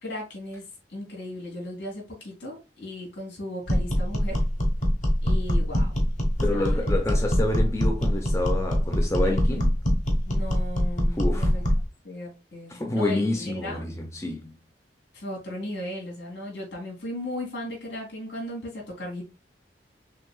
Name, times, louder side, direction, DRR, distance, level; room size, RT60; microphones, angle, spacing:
voice 1, 0.0-4.4 5.2-6.0 6.5-7.0 9.2-9.7 10.2-11.6 12.0-13.8 15.1-19.3, left 1 dB, 75° left, 2.4 m, -36 dB
sound 1, 3.7-11.9, equal, 40° left, 1.2 m, -23 dB
voice 2, 6.4-9.6 11.1-11.5 12.7-14.5, left 2 dB, 15° left, 0.6 m, -28 dB
6.3 x 2.9 x 2.3 m
head